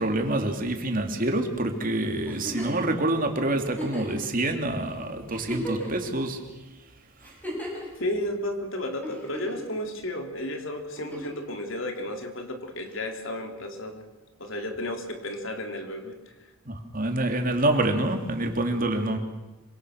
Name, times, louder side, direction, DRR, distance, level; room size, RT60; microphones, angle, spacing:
voice 1, 0.0-6.4 16.7-19.2, right 1 dB, 40° right, 4 dB, 3.0 m, -26 dB
Giggle, 2.3-2.8 3.7-4.2 4.8-4.9 5.3-6.1 7.2-7.9 9.0-9.7 11.0-11.4 12.9-13.0, equal, 10° left, 7.1 m, -36 dB
voice 2, 8.0-14.1 14.4-16.2, left 1 dB, 70° left, 5 dB, 3.4 m, -33 dB
26.5 x 25.0 x 6.6 m, 1.1 s
head